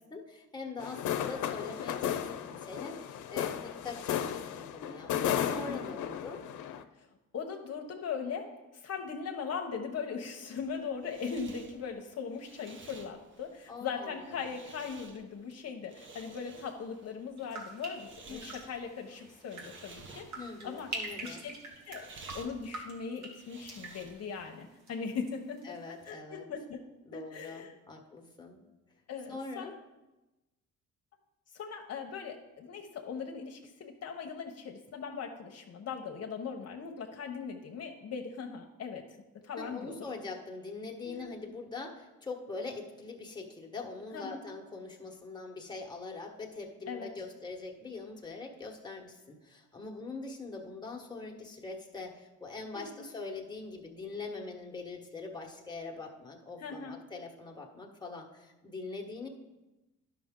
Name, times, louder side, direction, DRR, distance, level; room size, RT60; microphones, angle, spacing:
voice 1, 0.0-4.2 4.5-6.4 13.7-14.4 18.3-18.5 20.4-21.5 25.6-26.5 27.0-28.6 29.3-29.7 39.6-59.3, left 3 dB, 15° left, 1 dB, 1.3 m, -43 dB
sound 1, 0.8-6.8, left 9 dB, 80° left, 0.6 m, -34 dB
voice 2, 5.4-5.8 7.0-7.1 7.3-20.9 21.2-21.5 21.9-25.7 26.0-26.8 27.1-27.7 29.1-29.8 31.5-39.0 39.4-40.1 41.0-41.3 44.1-44.4 46.9-47.1 52.7-53.1 56.6-57.0, left 6 dB, 55° left, 3 dB, 0.9 m, -39 dB
sound 2, 10.6-24.4, right 3 dB, 40° right, 0.9 m, -53 dB
sound 3, 17.4-25.3 25.6-26.1, right 2 dB, 65° right, 2.0 m, -45 dB
11.0 x 5.9 x 3.7 m, 1.1 s
cardioid pair, 90°, 30 cm